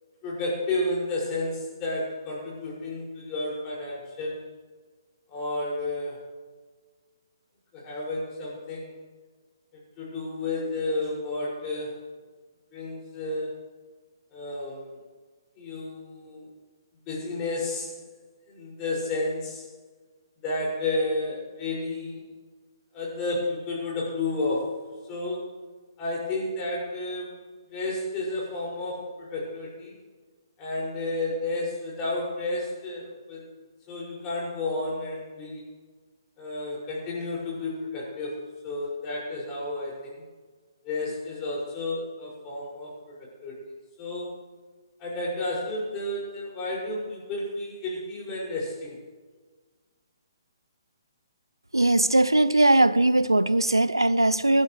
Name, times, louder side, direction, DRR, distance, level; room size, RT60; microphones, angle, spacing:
voice 1, 0.2-4.5 5.3-6.2 7.7-8.9 10.0-11.9 12.7-13.6 14.3-15.0 15.6-16.5 17.1-18.0 18.5-19.6 20.4-22.3 22.9-24.8 25.1-25.5 26.0-27.4 27.7-30.0 30.6-33.5 33.9-35.6 36.4-38.4 38.6-40.2 40.8-43.6 44.0-44.3 45.0-49.0, left 2 dB, 20° left, 5.9 m, -31 dB
voice 2, 51.7-54.6, right 1 dB, 80° right, 0.5 m, -20 dB
26.0 x 12.0 x 3.2 m
figure-of-eight pair, 130°, 2 cm